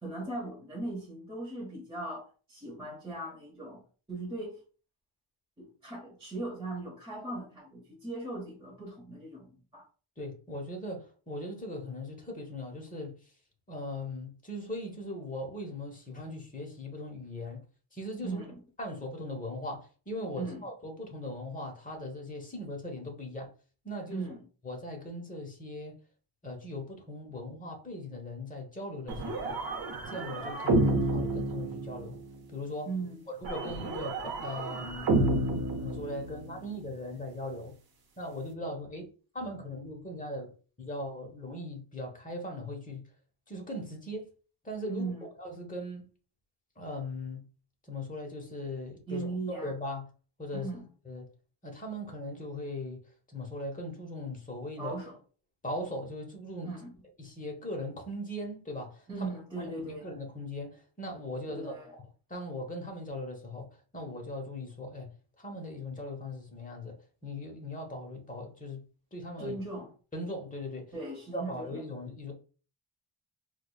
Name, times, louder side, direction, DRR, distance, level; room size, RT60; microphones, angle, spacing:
voice 1, 0.0-3.8 4.1-4.6 5.6-9.8 18.2-18.6 20.4-20.6 24.1-24.4 32.9-33.2 44.9-45.2 49.1-49.7 50.5-50.8 54.8-55.1 56.6-56.9 59.1-60.1 61.5-61.9 69.4-69.9 70.9-71.8, right 2 dB, 10° right, 1.0 m, -38 dB
voice 2, 10.2-13.3 13.7-17.6 17.9-18.4 18.8-23.5 23.8-24.3 24.6-26.0 26.4-29.6 30.0-32.2 32.5-32.9 33.4-35.1 35.8-37.7 38.2-39.1 39.3-40.5 40.8-43.0 43.5-44.3 44.6-45.1 45.4-46.0 46.8-47.4 47.9-50.1 50.4-50.7 51.0-51.3 51.6-55.0 55.6-56.7 57.2-59.3 59.6-62.0 62.3-65.1 65.4-67.0 67.2-68.8 69.1-69.6 70.1-70.9 71.3-72.3, left 1 dB, 15° left, 0.9 m, -39 dB
sound 1, 29.1-32.3 33.4-36.7, right 2 dB, 45° right, 0.7 m, -30 dB
4.7 x 2.3 x 2.3 m
wide cardioid pair, 135°, 50 cm